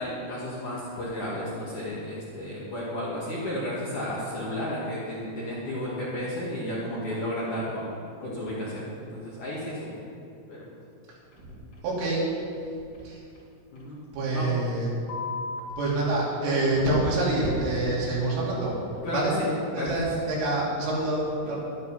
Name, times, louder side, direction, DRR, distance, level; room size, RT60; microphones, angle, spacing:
voice 1, 0.0-7.9 8.2-10.1 10.5-10.8 11.5-11.7 13.7-14.0 14.3-14.5 19.0-20.0 21.4-21.6, left 1 dB, 50° left, -7 dB, 2.6 m, -33 dB
sound 1, 11.3-11.4 11.7-11.8 12.1-12.2 12.5-12.6 12.9-13.0 13.3-13.4 13.8-13.9 15.1-15.6 16.7-17.1 17.6-17.7 18.8-19.2, left 4 dB, 70° left, 1.4 m, -37 dB
voice 2, 11.8-12.3 13.0-13.2 14.1-14.9 15.8-18.8 19.1-19.4 19.7-21.6, right 2 dB, 70° right, -6 dB, 5.4 m, -26 dB
12.0 x 11.5 x 5.6 m, 2.5 s
omnidirectional pair, 5.9 m